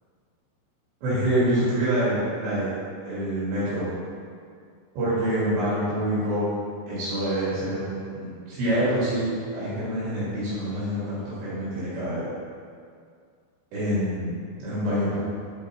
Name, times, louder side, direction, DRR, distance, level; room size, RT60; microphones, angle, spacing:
voice 1, 1.0-2.7 3.0-3.9 4.9-6.5 6.9-12.3 13.7-14.3 14.6-15.2, right 1 dB, 75° right, -10 dB, 4.5 m, -26 dB
10.5 x 4.8 x 4.1 m, 2.2 s
omnidirectional pair, 5.2 m